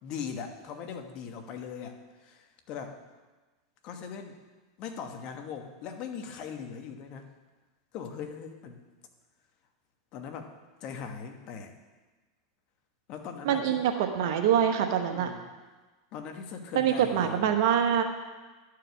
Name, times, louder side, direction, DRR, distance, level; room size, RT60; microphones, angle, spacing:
voice 1, 0.0-3.0 3.8-4.4 4.8-7.3 7.9-8.8 10.1-10.5 10.8-11.7 13.1-13.8 15.1-15.4 16.1-17.6, left 6 dB, 50° left, 5 dB, 1.3 m, -40 dB
voice 2, 13.4-15.3 16.7-18.0, right 9 dB, 65° right, 5 dB, 0.9 m, -25 dB
11.0 x 4.9 x 6.9 m, 1.3 s
hypercardioid pair, 105°, 2 cm